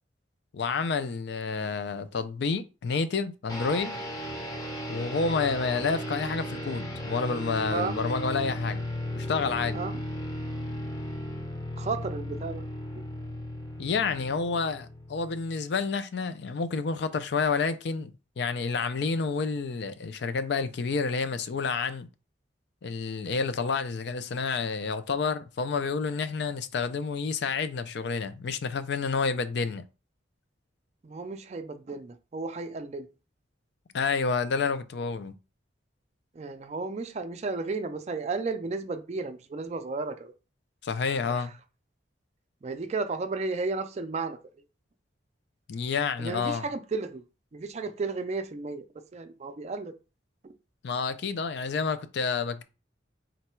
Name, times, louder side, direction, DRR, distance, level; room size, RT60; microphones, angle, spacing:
voice 1, 0.5-4.0 4.9-8.8 9.1-9.8 13.8-22.1 22.8-29.8 33.9-35.3 40.8-41.5 45.7-46.7 50.8-52.6, left 5 dB, 60° left, 0.4 m, -29 dB
sound 1, 3.5-15.7, equal, 20° left, 0.6 m, -36 dB
voice 2, 11.7-12.6 31.0-33.1 36.4-40.3 41.3-41.5 42.6-44.4 46.2-47.2 47.5-49.9, right 3 dB, 35° right, 0.4 m, -33 dB
3.9 x 2.2 x 4.3 m
head